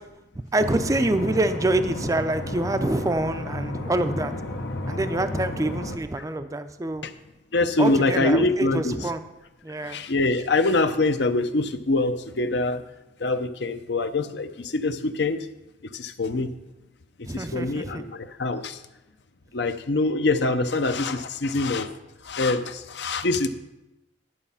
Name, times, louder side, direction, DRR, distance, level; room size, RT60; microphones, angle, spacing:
voice 1, 0.5-4.3 4.9-7.1 7.8-9.2 9.6-10.0 17.2-18.0, right 2 dB, 20° right, 9 dB, 0.4 m, -26 dB
sound 1, 0.6-6.0, left 1 dB, 90° left, 1.2 m, -32 dB
voice 2, 7.5-8.9 9.8-12.8 13.2-15.5 15.9-16.5 17.2-18.8 19.5-21.9 22.2-23.5, left 2 dB, 70° left, 10 dB, 0.7 m, -24 dB
11.0 x 7.2 x 5.6 m, 0.98 s
head